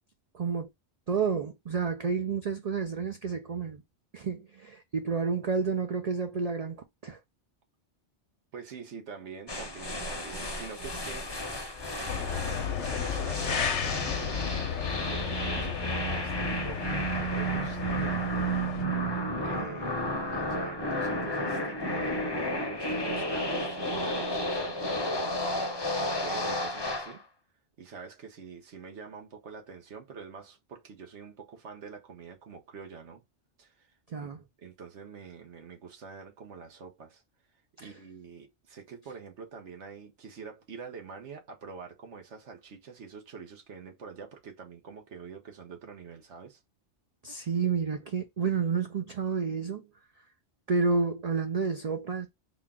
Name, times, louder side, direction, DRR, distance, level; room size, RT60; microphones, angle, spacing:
voice 1, 0.3-0.7 1.1-3.8 4.1-7.2 34.1-34.4 37.8-37.9 47.2-49.8 50.7-52.3, right 5 dB, 50° right, 0.5 m, -30 dB
voice 2, 8.5-18.3 19.4-20.0 20.3-27.2 27.8-33.2 33.6-33.9 34.2-34.3 34.6-37.2 37.8-46.6, right 5 dB, 80° right, 1.3 m, -46 dB
sound 1, 9.5-27.2, equal, 25° left, 0.7 m, -32 dB
sound 2, 12.1-18.9, left 7 dB, 85° left, 1.0 m, -34 dB
3.7 x 2.3 x 3.6 m
omnidirectional pair, 1.2 m